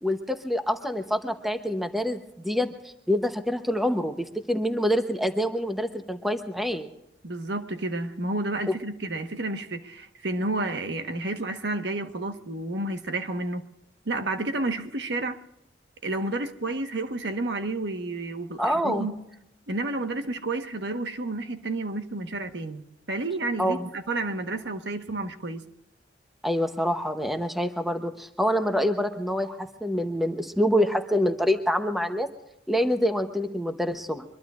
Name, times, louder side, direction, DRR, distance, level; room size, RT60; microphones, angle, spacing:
voice 1, 0.0-2.7 3.1-6.9 8.7-8.8 18.6-19.1 23.6-23.9 26.4-32.3 32.7-34.2, equal, ahead, 0.9 m, -26 dB
voice 2, 7.2-13.6 14.0-15.4 16.0-19.2 19.7-25.6, right 2 dB, 70° right, 1.3 m, -31 dB
24.0 x 22.0 x 2.5 m
head